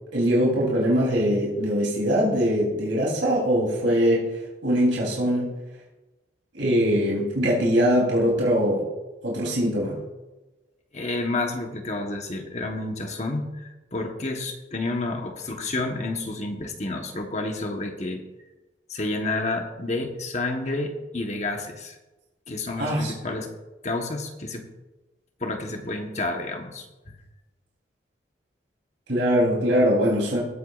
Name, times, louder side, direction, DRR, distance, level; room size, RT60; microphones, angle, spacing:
voice 1, 0.1-4.2 4.6-5.5 6.5-8.8 9.2-10.0 22.8-23.1 29.1-30.4, equal, 80° right, -4 dB, 3.4 m, -22 dB
voice 2, 10.9-18.2 18.9-21.9 22.5-23.5 23.8-24.7 25.4-27.1, left 2 dB, 35° left, 3 dB, 1.2 m, -30 dB
19.5 x 8.1 x 2.5 m, 1.1 s
head